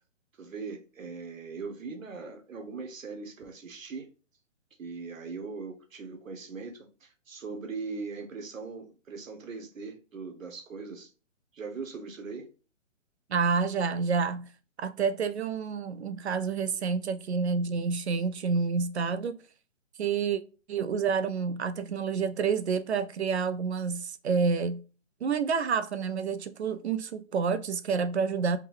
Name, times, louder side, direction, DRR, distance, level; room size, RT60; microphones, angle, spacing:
voice 1, 0.4-4.1 4.8-11.1 11.5-12.5, right 4 dB, 75° right, 1.2 m, -40 dB
voice 2, 13.3-14.5 14.8-19.4 20.0-20.4 20.7-24.8 25.2-28.6, right 5 dB, 55° right, 0.5 m, -28 dB
3.8 x 2.2 x 4.3 m
hypercardioid pair, 155°, 39 cm